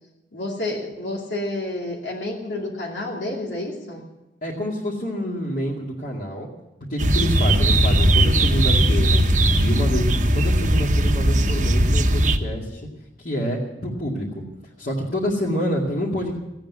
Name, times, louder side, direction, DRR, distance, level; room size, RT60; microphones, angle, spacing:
voice 1, 0.3-4.0, left 2 dB, 85° left, -2 dB, 2.7 m, -29 dB
voice 2, 4.4-6.5 6.9-9.2 9.6-12.9 13.2-14.5 14.8-16.3, equal, 50° left, -6 dB, 2.3 m, -27 dB
sound 1, 7.0-12.4, right 1 dB, 40° right, 0.9 m, -18 dB
16.0 x 8.8 x 9.5 m, 0.97 s
head